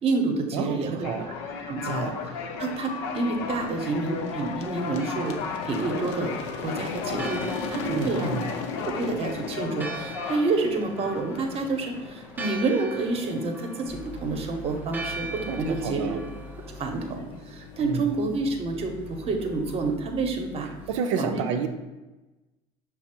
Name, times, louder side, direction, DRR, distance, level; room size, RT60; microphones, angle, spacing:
voice 1, 0.0-1.4 1.7-2.1 2.6-5.4 5.6-6.3 6.6-7.4 7.7-8.4 8.8-16.2 16.8-20.7 21.2-21.4, right 3 dB, 45° right, 4 dB, 0.8 m, -28 dB
voice 2, 0.5-1.3 1.8-2.2 7.9-8.5 15.5-16.2 17.8-18.0 20.9-21.7, right 6 dB, 85° right, 6 dB, 0.5 m, -30 dB
sound 1, 1.0-19.9, left 5 dB, 85° left, 0.5 m, -36 dB
Church bell, 5.0-17.1, right 2 dB, 10° right, 0.5 m, -41 dB
sound 2, 13.9-21.0, left 2 dB, 30° left, 0.9 m, -44 dB
5.7 x 2.0 x 4.3 m, 1.1 s
supercardioid pair, 80°, 15 cm